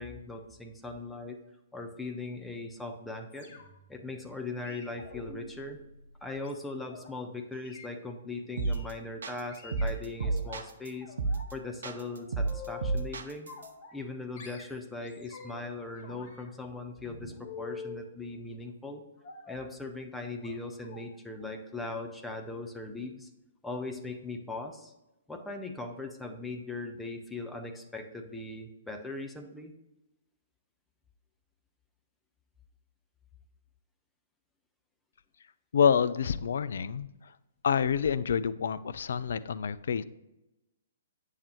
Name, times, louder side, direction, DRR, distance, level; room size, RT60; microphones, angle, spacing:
voice 1, 0.0-1.4 1.7-3.5 3.9-5.8 6.2-11.1 11.5-13.5 13.9-19.0 19.5-23.3 23.6-24.9 25.3-29.7, left 3 dB, 5° left, 4 dB, 0.8 m, -39 dB
sound 1, 3.3-3.9 4.6-7.1 7.5-7.9 8.6-8.9 9.5-10.6 11.0-11.5 11.8-13.1 13.5-14.1 14.4-15.7 16.0-18.1 19.2-19.7 20.4-20.5 20.8-21.0 21.4-21.6 21.9-22.0, left 5 dB, 40° left, 1.2 m, -47 dB
sound 2, 8.6-8.9 9.2-10.9 11.2-11.5 11.8-13.7, right 3 dB, 60° right, 0.7 m, -31 dB
voice 2, 35.7-37.1 37.6-40.0, left 7 dB, 60° left, 15 dB, 0.4 m, -27 dB
8.6 x 6.5 x 3.0 m, 0.95 s
figure-of-eight pair, 120°, 0 cm